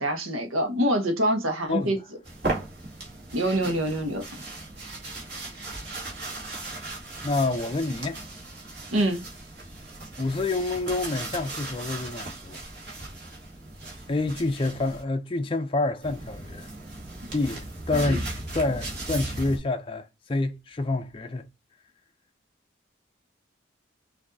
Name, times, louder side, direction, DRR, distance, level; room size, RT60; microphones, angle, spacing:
voice 1, 0.0-2.0 3.3-4.2 8.9-9.2 18.0-18.2, right 1 dB, 90° right, 1.1 m, -25 dB
voice 2, 1.7-2.0 7.2-8.2 10.2-12.6 14.1-16.7 17.3-21.4, left 2 dB, 25° left, 0.4 m, -28 dB
sound 1, 2.2-15.0 16.0-19.6, right 2 dB, 50° right, 2.0 m, -37 dB
6.0 x 2.6 x 2.6 m
head